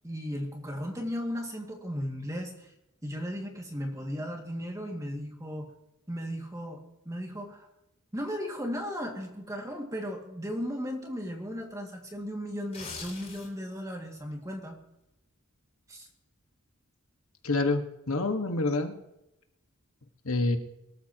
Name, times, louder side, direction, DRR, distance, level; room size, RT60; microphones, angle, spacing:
voice 1, 0.0-2.7 3.0-5.7 6.1-7.7 8.1-14.8 15.9-16.1, equal, 15° right, 1 dB, 2.2 m, -36 dB
sound 1, 12.6-13.7 14.1-14.3, left 4 dB, 30° left, 6.6 m, -42 dB
voice 2, 17.4-18.9 20.2-20.6, left 2 dB, 70° left, 5 dB, 1.7 m, -27 dB
24.0 x 13.5 x 3.0 m, 0.88 s
head